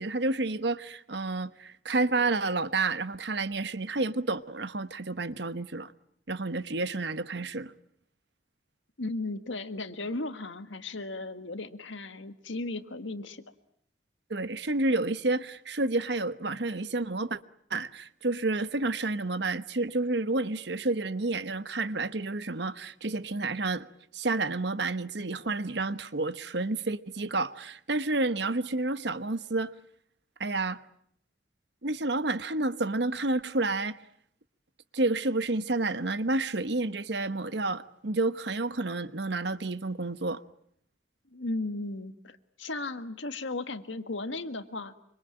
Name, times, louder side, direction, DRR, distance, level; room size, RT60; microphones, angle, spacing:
voice 1, 0.0-5.9 6.3-7.7 14.3-17.4 17.7-23.9 24.1-29.7 30.4-30.8 31.8-34.0 34.9-40.4, right 2 dB, 65° right, 1.1 m, -30 dB
voice 2, 9.0-13.4 41.3-44.9, left 2 dB, 90° left, 1.7 m, -36 dB
26.0 x 25.0 x 8.8 m
head